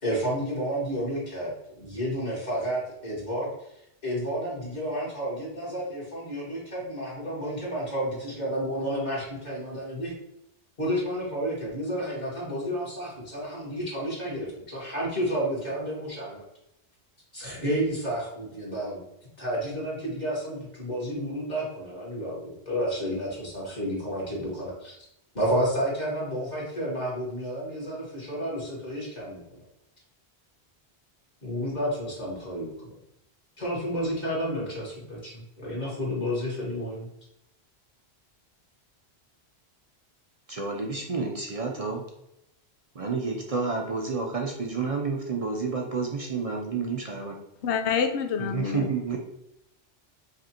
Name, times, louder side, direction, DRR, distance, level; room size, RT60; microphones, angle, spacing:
voice 1, 0.0-3.5 4.0-10.1 10.8-16.4 17.3-19.0 19.4-25.0 25.3-29.4 31.4-32.7 33.6-37.1, equal, 40° left, -6 dB, 1.7 m, -31 dB
voice 2, 40.5-42.0 43.0-47.4 48.5-49.2, right 4 dB, 45° right, 1 dB, 0.5 m, -30 dB
voice 3, 47.6-49.2, left 6 dB, 85° left, 6 dB, 0.9 m, -28 dB
5.3 x 2.5 x 2.8 m, 0.82 s
omnidirectional pair, 1.1 m